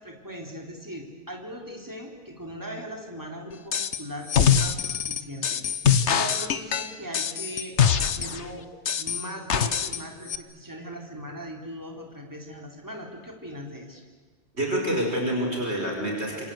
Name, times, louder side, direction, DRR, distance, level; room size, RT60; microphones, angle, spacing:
voice 1, 0.0-5.6 5.9-8.7 9.0-14.0, equal, 15° right, 2 dB, 4.0 m, -39 dB
sound 1, 3.7-4.0 4.3-8.4 8.9-10.0 10.3-10.4, left 8 dB, 85° left, 1.4 m, -23 dB
voice 2, 14.5-16.5, right 1 dB, 70° right, 0 dB, 5.6 m, -27 dB
27.0 x 26.5 x 8.1 m, 1.4 s
omnidirectional pair, 1.1 m